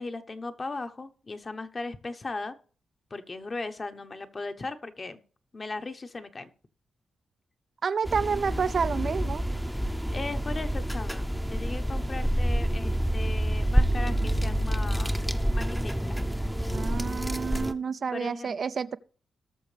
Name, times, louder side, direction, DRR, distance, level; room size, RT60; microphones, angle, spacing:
voice 1, 0.0-2.5 3.1-5.2 5.5-6.5 10.1-15.2 15.5-16.2 18.1-18.6, left 3 dB, 40° left, 1.0 m, -37 dB
voice 2, 7.8-9.4 16.7-19.0, right 6 dB, 60° right, 0.4 m, -29 dB
sound 1, 8.0-17.7, equal, ahead, 0.7 m, -28 dB
18.5 x 6.3 x 3.3 m
cardioid pair, 75°, 0 cm